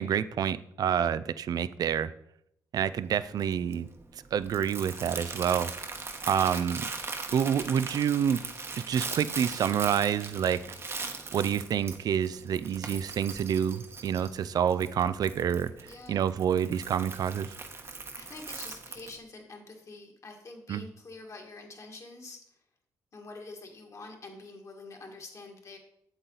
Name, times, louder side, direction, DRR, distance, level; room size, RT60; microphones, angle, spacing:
voice 1, 0.0-2.1 2.7-3.9 4.3-5.7 6.3-6.9 7.3-8.4 8.9-10.6 10.9-11.0 11.3-15.7 16.1-17.5 20.7-20.8, right 8 dB, 60° right, 15 dB, 0.4 m, -28 dB
Crumpling crinkling, 2.8-19.2, right 4 dB, 35° right, 1.1 m, -40 dB
voice 2, 15.9-16.3 17.8-22.6 23.1-25.8, left 3 dB, 45° left, 2 dB, 1.9 m, -46 dB
8.0 x 7.6 x 4.0 m, 0.76 s
cardioid pair, 85°, 7 cm